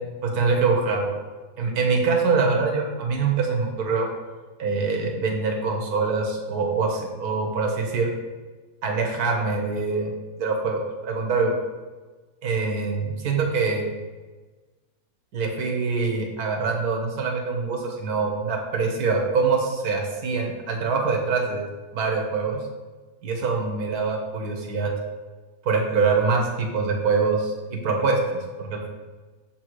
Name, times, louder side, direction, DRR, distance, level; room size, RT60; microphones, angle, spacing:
voice 1, 0.2-1.1 1.6-4.1 4.6-8.1 8.8-10.1 10.4-11.5 12.4-13.9 15.3-21.6 21.9-22.6 23.2-24.9 25.6-27.5 27.8-28.9, right 4 dB, 90° right, 1 dB, 1.5 m, -24 dB
7.1 x 4.4 x 4.6 m, 1.3 s
omnidirectional pair, 1.6 m